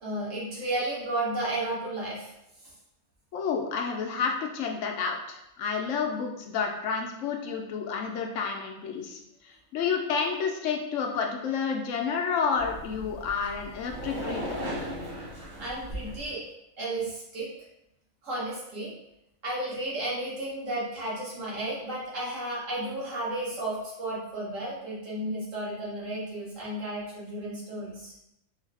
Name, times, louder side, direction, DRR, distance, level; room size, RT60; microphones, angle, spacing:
voice 1, 0.0-2.3 2.6-2.7 15.6-16.4 16.8-17.5 18.2-18.9 19.4-28.1, right 1 dB, 70° right, -6 dB, 1.7 m, -33 dB
voice 2, 3.3-14.6, left 6 dB, 70° left, 2 dB, 0.9 m, -30 dB
sound 1, 12.5-16.3, equal, 35° right, 1.7 m, -37 dB
4.7 x 2.7 x 3.3 m, 0.84 s
omnidirectional pair, 1.4 m